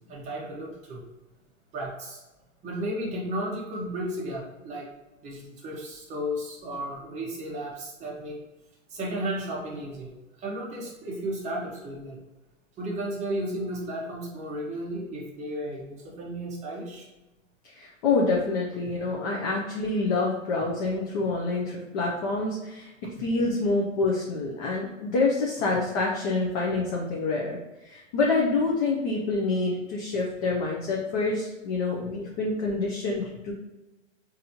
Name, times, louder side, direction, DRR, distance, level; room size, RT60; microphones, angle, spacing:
voice 1, 0.1-1.0 1.7-2.2 2.6-4.9 5.2-8.4 8.9-10.1 10.4-12.2 12.8-17.1, right 1 dB, 20° right, -3 dB, 0.7 m, -34 dB
voice 2, 17.6-33.5, left 3 dB, 30° left, -2 dB, 0.4 m, -27 dB
4.1 x 2.6 x 2.8 m, 1.1 s
hypercardioid pair, 140°, 40 cm